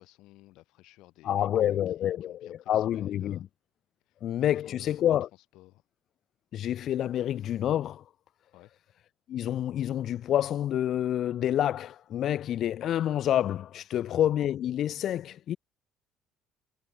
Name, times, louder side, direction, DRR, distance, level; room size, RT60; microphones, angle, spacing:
voice 1, 0.0-3.4 4.1-5.8 8.5-8.7 13.9-14.1, left 18 dB, 80° left, 2.3 m, -55 dB
voice 2, 1.2-3.4 4.2-5.3 6.5-8.0 9.3-15.6, left 11 dB, 60° left, 0.4 m, -28 dB
cardioid pair, 100°, 0 cm